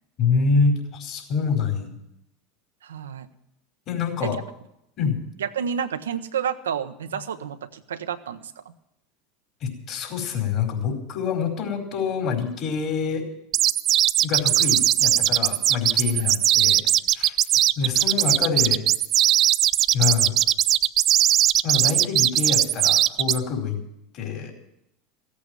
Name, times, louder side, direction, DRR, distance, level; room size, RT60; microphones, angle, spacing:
voice 1, 0.2-1.9 3.9-4.4 5.0-5.2 9.6-13.2 14.2-16.8 17.1-17.3 17.8-18.8 19.9-20.3 21.6-23.8 24.1-24.5, left 5 dB, 50° left, 2 dB, 4.6 m, -26 dB
voice 2, 2.8-3.3 4.2-4.4 5.4-8.5 16.2-16.3, right 8 dB, 85° right, 9 dB, 0.8 m, -30 dB
sound 1, 13.5-23.4, right 12 dB, 45° right, 0.4 m, -19 dB
15.0 x 8.5 x 9.2 m, 0.80 s
hypercardioid pair, 85°, 0 cm